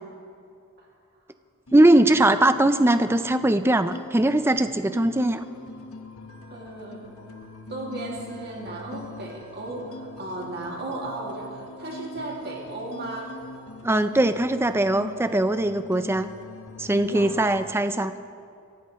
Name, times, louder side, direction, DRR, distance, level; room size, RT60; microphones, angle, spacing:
sound 1, 1.7-17.7, left 3 dB, 70° left, 1.2 m, -43 dB
voice 1, 1.7-5.4 13.8-16.3 16.8-18.1, right 1 dB, 10° right, 10 dB, 0.4 m, -20 dB
voice 2, 6.5-7.2 7.7-13.3 17.1-17.5, right 2 dB, 45° right, -2 dB, 2.3 m, -35 dB
24.5 x 16.0 x 3.1 m, 2.5 s
head